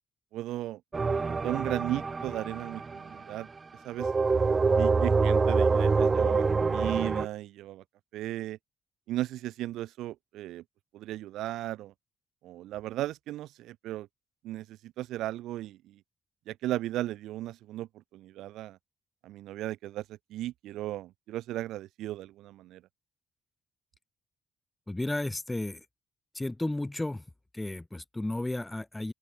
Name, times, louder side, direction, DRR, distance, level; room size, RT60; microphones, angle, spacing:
voice 1, 0.3-0.8 1.3-3.5 3.8-4.1 4.7-7.8 8.1-8.6 9.1-10.6 10.9-11.9 12.4-14.1 14.4-16.0 16.5-18.8 19.2-22.8, right 14 dB, 85° right, 5.6 m, -36 dB
sound 1, 0.9-3.4 4.0-7.3, right 4 dB, 30° right, 1.0 m, -26 dB
voice 2, 24.9-25.9 26.3-27.2 27.5-29.1, left 2 dB, 10° left, 3.9 m, -33 dB
open air
cardioid pair, 90°, 0 cm